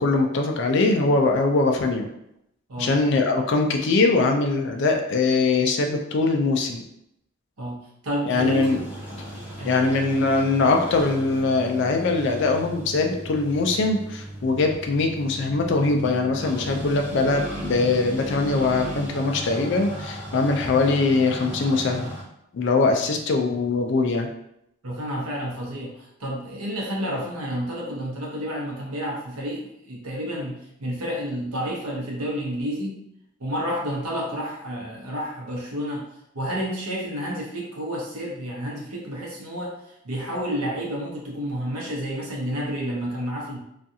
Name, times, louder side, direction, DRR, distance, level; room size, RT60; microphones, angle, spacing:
voice 1, 0.0-2.1 2.8-6.8 8.3-8.8 9.7-22.1 22.5-24.3, left 3 dB, 55° left, 3 dB, 0.4 m, -22 dB
voice 2, 8.0-8.7 9.6-9.9 23.0-23.1 24.8-33.0 33.4-36.1 36.3-43.6, equal, 90° right, -3 dB, 0.8 m, -30 dB
sound 1, 8.3-22.2, right 1 dB, 10° right, 0.7 m, -36 dB
2.5 x 2.3 x 2.7 m, 0.78 s
head